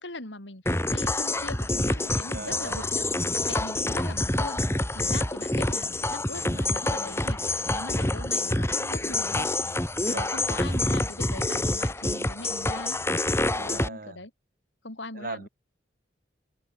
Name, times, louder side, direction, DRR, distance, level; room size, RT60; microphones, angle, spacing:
voice 1, 0.0-3.1 3.5-4.6 4.9-9.5 10.0-13.0 13.6-14.3 14.8-15.5, left 2 dB, 80° left, 5.4 m, -40 dB
sound 1, 0.7-13.9, left 2 dB, 15° left, 2.8 m, -27 dB
voice 2, 2.3-2.9 10.0-10.3 13.5-14.2 15.1-15.5, right 3 dB, 50° right, 2.3 m, -39 dB
head